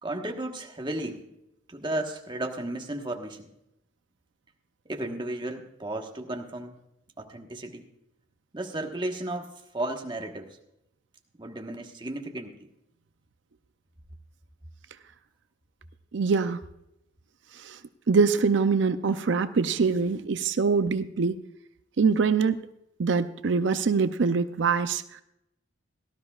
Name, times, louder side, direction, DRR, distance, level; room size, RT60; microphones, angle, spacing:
voice 1, 0.0-1.3 1.7-3.5 4.9-6.8 7.2-7.9 8.5-10.5 11.4-12.7, right 1 dB, 25° right, 3 dB, 1.3 m, -34 dB
voice 2, 16.1-16.6 17.7-17.8 18.1-21.4 22.0-22.6 23.0-25.0, right 5 dB, 70° right, 11 dB, 0.5 m, -24 dB
18.0 x 13.0 x 2.4 m, 0.83 s
head